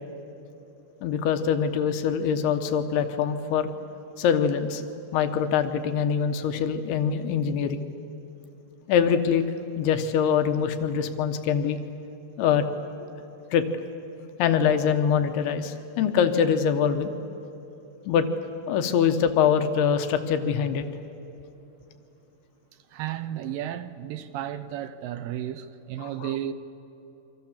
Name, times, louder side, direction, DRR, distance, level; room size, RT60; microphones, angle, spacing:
voice 1, 1.0-3.7 4.2-4.8 5.1-7.8 8.9-9.4 9.8-11.8 12.4-12.6 13.5-13.6 14.4-17.1 18.1-18.3 18.7-20.9 26.2-26.3, left 7 dB, 90° left, 3.2 m, -23 dB
voice 2, 22.9-26.5, right 11 dB, 75° right, 2.3 m, -33 dB
29.0 x 24.5 x 7.3 m
omnidirectional pair, 4.5 m